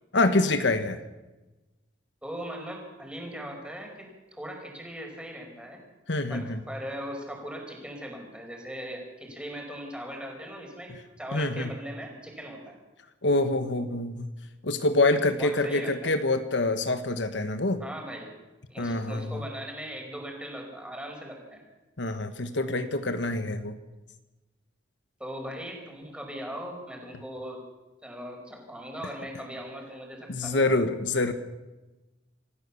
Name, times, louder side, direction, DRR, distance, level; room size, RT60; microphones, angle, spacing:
voice 1, 0.1-1.0 6.1-6.6 11.3-11.7 13.2-14.3 14.6-17.8 18.8-19.3 22.0-23.8 30.3-31.3, left 2 dB, 70° left, 9 dB, 1.3 m, -26 dB
voice 2, 2.2-5.8 6.3-12.8 15.4-16.1 17.8-18.3 18.7-21.6 25.2-27.6 28.0-30.7, equal, 5° right, 1 dB, 5.1 m, -39 dB
26.5 x 15.0 x 7.1 m, 1.1 s
head